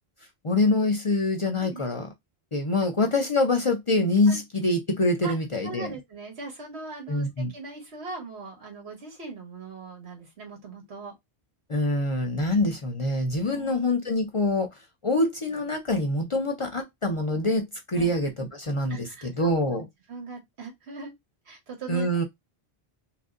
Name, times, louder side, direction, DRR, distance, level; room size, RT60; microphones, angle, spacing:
voice 1, 0.4-2.1 2.5-5.9 7.1-7.5 11.7-19.9 21.9-22.2, left 2 dB, 40° left, 0.5 m, -25 dB
voice 2, 5.6-11.1 13.5-13.8 18.0-18.1 18.9-19.3 19.7-21.1 21.5-22.1, right 4 dB, 90° right, 1.6 m, -40 dB
2.9 x 2.6 x 3.6 m
omnidirectional pair, 1.1 m